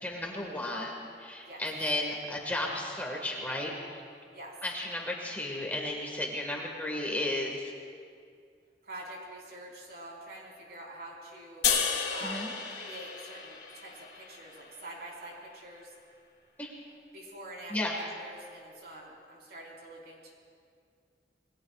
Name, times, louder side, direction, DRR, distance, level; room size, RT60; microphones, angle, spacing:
voice 1, 0.0-4.0 4.6-7.7 12.2-12.5 16.6-16.7 17.7-18.0, left 1 dB, 10° left, -1 dB, 1.7 m, -34 dB
voice 2, 8.8-11.6 12.1-15.9 17.1-20.3, right 1 dB, 60° right, -3 dB, 4.4 m, -46 dB
sound 1, 11.6-14.9, left 6 dB, 75° left, 2.3 m, -32 dB
28.0 x 21.0 x 2.4 m, 2.3 s
head